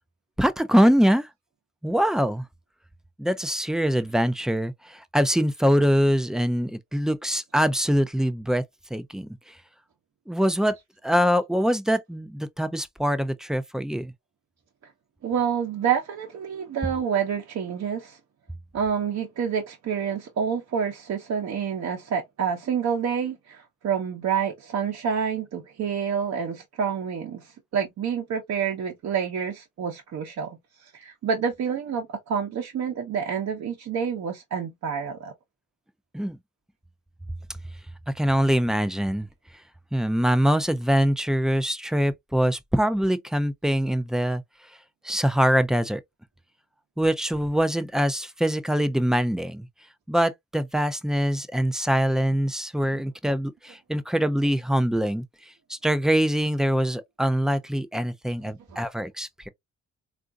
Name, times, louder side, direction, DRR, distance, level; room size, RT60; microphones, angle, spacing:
voice 1, 0.4-1.3 1.8-2.4 3.2-8.6 8.9-9.3 10.3-10.8 11.0-14.1 36.1-36.4 38.2-39.3 39.9-44.4 45.0-46.0 47.0-49.7 50.1-55.2 55.7-59.5, equal, ahead, 0.3 m, -23 dB
voice 2, 15.2-18.2 18.7-35.3 58.7-58.8, right 7 dB, 60° right, 0.8 m, -28 dB
3.6 x 2.5 x 2.3 m
cardioid pair, 90°, 30 cm